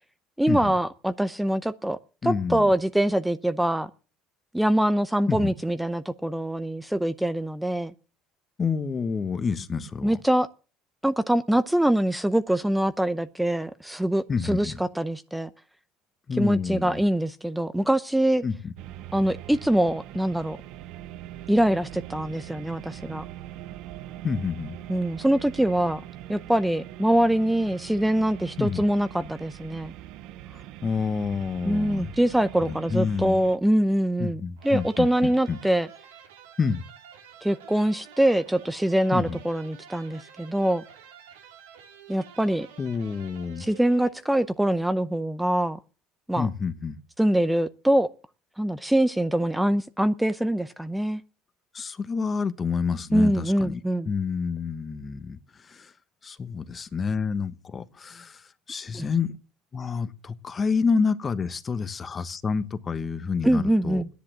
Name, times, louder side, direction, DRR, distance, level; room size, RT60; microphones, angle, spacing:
voice 1, 0.4-2.0 2.2-3.9 4.5-7.9 10.0-10.5 11.0-15.5 16.4-18.4 19.1-20.6 21.5-23.2 24.9-26.0 26.3-29.9 31.6-35.9 37.4-40.8 42.1-42.7 43.6-45.8 46.3-46.5 47.2-48.1 48.6-51.2 53.1-54.1 58.9-59.1 63.4-64.1, right 1 dB, 5° right, 0.7 m, -24 dB
voice 2, 2.2-2.7 5.3-5.5 8.6-10.2 14.3-14.8 16.3-17.0 18.4-18.7 24.2-24.8 28.6-28.8 30.5-32.1 32.6-33.4 34.2-35.6 36.6-36.8 39.1-39.4 42.8-43.6 46.4-47.0 51.7-53.8 54.1-55.9 56.2-59.4 59.7-64.0, left 5 dB, 30° left, 1.2 m, -28 dB
sound 1, 18.8-33.6, right 13 dB, 70° right, 0.7 m, -42 dB
sound 2, 34.6-44.5, right 8 dB, 90° right, 2.8 m, -49 dB
12.0 x 10.5 x 7.4 m
supercardioid pair, 85°, 0 cm